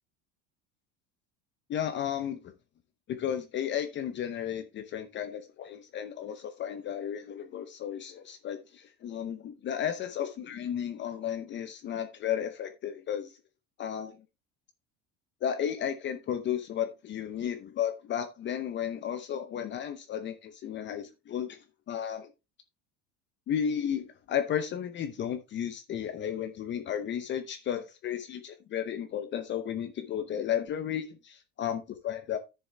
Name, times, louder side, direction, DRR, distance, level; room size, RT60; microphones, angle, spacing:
voice 1, 1.7-2.4 3.1-13.4 13.8-14.2 15.4-21.6 21.9-22.3 23.5-32.4, left 9 dB, 35° left, 9 dB, 0.8 m, -33 dB
10.0 x 6.9 x 3.3 m, 0.26 s
cardioid pair, 150°, 33 cm